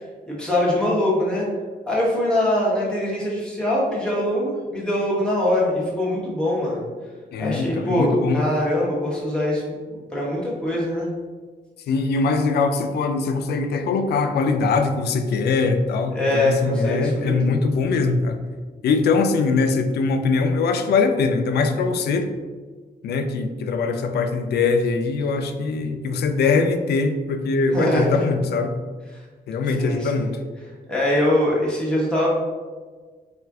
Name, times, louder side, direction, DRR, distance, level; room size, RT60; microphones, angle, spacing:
voice 1, 0.3-1.5 1.9-6.8 7.4-11.1 16.1-17.6 27.7-28.3 29.1-29.2 29.8-30.3 30.9-32.3, left 1 dB, 5° left, -6 dB, 1.0 m, -23 dB
voice 2, 7.3-8.4 11.9-18.4 18.8-22.3 23.0-28.7 29.5-30.3, left 4 dB, 90° left, 7 dB, 0.4 m, -22 dB
4.3 x 2.4 x 3.5 m, 1.4 s
wide cardioid pair, 175°, 16 cm